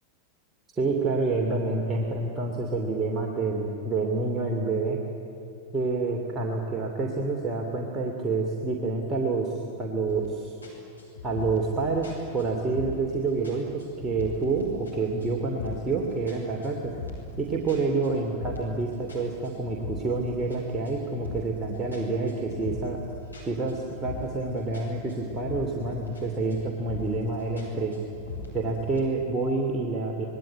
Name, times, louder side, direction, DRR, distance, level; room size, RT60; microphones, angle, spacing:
voice 1, 0.8-5.0 5.7-10.5 11.2-16.9 17.4-23.0 23.4-27.9 28.5-30.3, right 3 dB, 20° right, -1 dB, 2.7 m, -28 dB
sound 1, 10.1-10.3 10.6-13.1 13.4-14.9 15.2-15.9 16.3-18.8 19.1-21.6 21.9-24.5 24.7-26.2 26.5-27.2 27.6-29.0, left 3 dB, 85° left, 6.8 m, -39 dB
26.0 x 21.0 x 9.5 m, 2.9 s
figure-of-eight pair, 90°, 0 cm